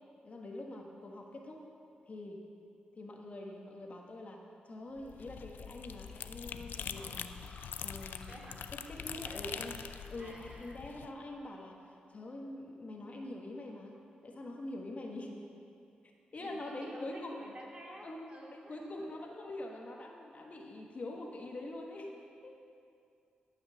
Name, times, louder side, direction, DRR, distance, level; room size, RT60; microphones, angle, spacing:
voice 1, 0.2-1.7 2.1-2.4 3.0-7.4 7.8-9.8 10.1-11.8 12.1-13.9 14.2-15.4 16.3-17.4 18.0-22.5, left 1 dB, 45° left, 0 dB, 1.4 m, -44 dB
sound 1, 5.0-11.1, left 8 dB, 80° left, 0.4 m, -44 dB
Fill (with liquid), 5.7-10.5, left 1 dB, 20° left, 2.9 m, -58 dB
voice 2, 8.3-8.6 9.1-9.6 10.2-10.8 16.4-19.2, right 1 dB, 35° right, -3 dB, 2.6 m, -51 dB
12.5 x 5.7 x 6.8 m, 2.5 s
cardioid pair, 65°, 3 cm